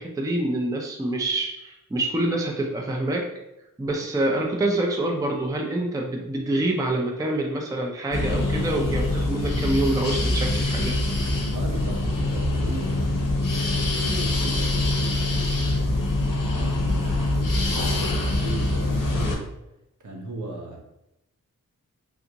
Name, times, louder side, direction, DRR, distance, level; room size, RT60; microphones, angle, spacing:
voice 1, 0.0-3.4 3.8-11.0, right 1 dB, 10° right, 1 dB, 0.4 m, -26 dB
sound 1, 8.1-19.3, left 2 dB, 75° left, 0.7 m, -24 dB
voice 2, 11.5-13.7 14.1-15.9 16.5-19.6 20.0-20.8, right 2 dB, 60° right, 0 dB, 0.8 m, -37 dB
3.5 x 2.6 x 2.8 m, 0.87 s
wide cardioid pair, 80°, 33 cm